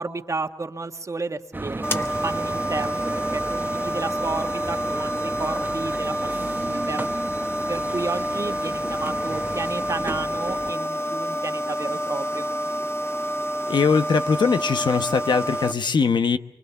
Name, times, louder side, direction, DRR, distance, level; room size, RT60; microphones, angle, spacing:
voice 1, 0.0-7.1 7.7-12.5, right 3 dB, 40° right, 7 dB, 1.5 m, -32 dB
sound 1, 1.5-10.7, right 2 dB, 25° right, 0.9 m, -34 dB
sound 2, 1.8-15.7, equal, 30° left, 2.0 m, -28 dB
voice 2, 13.7-16.4, left 5 dB, 70° left, 9 dB, 1.0 m, -21 dB
24.5 x 24.5 x 7.1 m, 0.78 s
cardioid pair, 65°, 8 cm